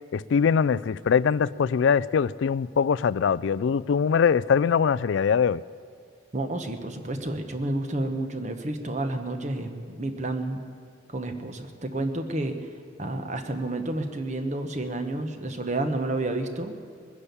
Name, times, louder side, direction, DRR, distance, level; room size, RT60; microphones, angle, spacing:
voice 1, 0.1-5.6, left 6 dB, 70° left, 19 dB, 0.3 m, -22 dB
voice 2, 6.3-10.7 11.1-12.7 13.0-16.7, right 2 dB, 35° right, 6 dB, 1.1 m, -30 dB
21.0 x 9.9 x 7.0 m, 2.2 s
head